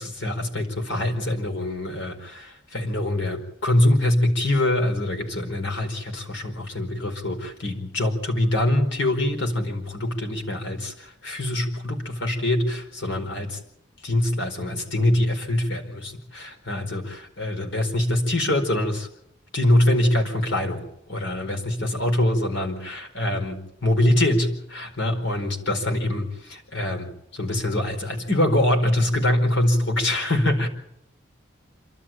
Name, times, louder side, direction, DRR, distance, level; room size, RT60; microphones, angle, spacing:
voice 1, 0.0-13.6 14.0-19.1 19.5-30.7, left 1 dB, 65° left, 4 dB, 4.6 m, -24 dB
27.5 x 12.5 x 8.8 m, 0.78 s
head